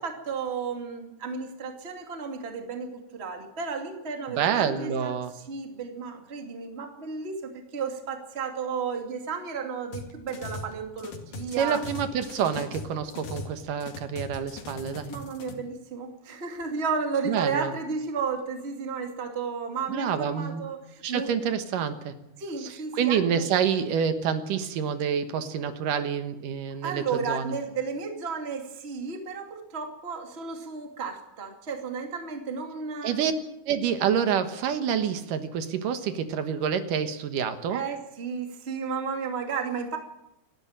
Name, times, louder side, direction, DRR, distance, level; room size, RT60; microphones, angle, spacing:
voice 1, 0.0-5.1 5.5-11.8 15.1-21.3 22.4-23.4 26.8-33.1 37.7-40.0, right 5 dB, 25° right, 4 dB, 1.5 m, -33 dB
voice 2, 4.3-5.3 11.6-15.1 17.3-17.7 19.9-20.6 21.0-22.1 22.6-27.5 33.0-33.3 33.7-37.8, right 8 dB, 65° right, 9 dB, 2.3 m, -27 dB
sound 1, 9.9-10.7 11.0-13.6 13.8-15.5, left 3 dB, 55° left, 3.4 m, -39 dB
26.0 x 12.0 x 8.8 m, 0.86 s
omnidirectional pair, 5.2 m